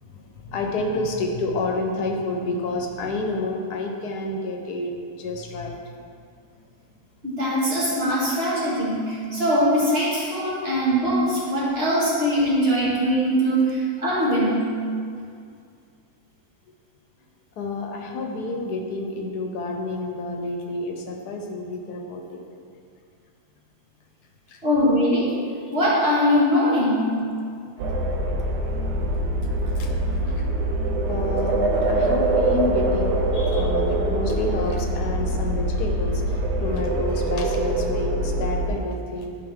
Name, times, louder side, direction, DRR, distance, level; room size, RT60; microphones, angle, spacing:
voice 1, 0.0-4.9 5.2-6.0 17.6-22.4 24.5-24.6 29.7-29.9 30.3-30.5 31.1-39.4, left 2 dB, 80° left, 2 dB, 1.3 m, -29 dB
voice 2, 7.2-14.7 24.6-25.4 25.7-27.1, equal, 40° right, -8 dB, 2.1 m, -21 dB
sound 1, 27.8-38.7, right 1 dB, 85° right, 1.3 m, -24 dB
11.0 x 4.4 x 3.6 m, 2.3 s
omnidirectional pair, 1.7 m